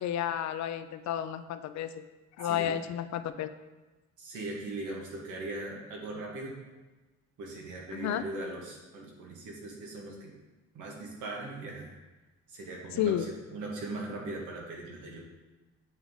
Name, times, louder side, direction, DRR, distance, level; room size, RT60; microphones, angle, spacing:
voice 1, 0.0-2.0 2.4-3.5 7.9-8.2 13.0-13.3, left 10 dB, 65° left, 12 dB, 0.5 m, -31 dB
voice 2, 2.4-2.8 4.2-6.5 7.4-10.3 10.7-11.9 12.5-15.2, right 2 dB, 90° right, -1 dB, 1.6 m, -40 dB
8.8 x 3.6 x 3.7 m, 1.2 s
cardioid pair, 90°, 30 cm